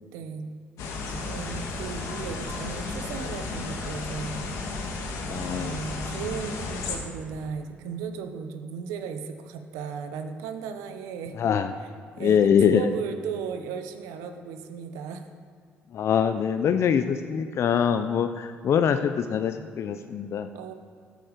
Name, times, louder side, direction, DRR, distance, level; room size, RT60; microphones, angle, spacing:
voice 1, 0.1-0.5 1.1-4.3 5.3-11.4 12.2-15.3 20.5-20.7, right 6 dB, 85° right, 7 dB, 0.9 m, -36 dB
sound 1, 0.8-7.0, left 3 dB, 75° left, 1.6 m, -33 dB
voice 2, 5.3-5.8 11.3-11.7 12.2-12.9 15.9-20.5, left 7 dB, 60° left, 9 dB, 0.5 m, -24 dB
13.5 x 7.8 x 5.1 m, 2.2 s
supercardioid pair, 65°, 5 cm